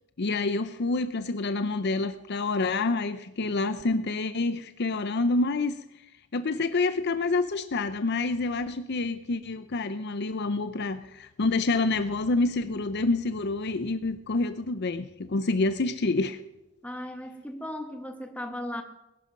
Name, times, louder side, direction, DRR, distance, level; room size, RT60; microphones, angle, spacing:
voice 1, 0.2-5.8 6.3-16.4, left 3 dB, 55° left, 11 dB, 0.6 m, -27 dB
voice 2, 16.8-18.8, left 1 dB, 5° left, 5 dB, 1.5 m, -36 dB
20.5 x 11.5 x 5.3 m, 0.93 s
head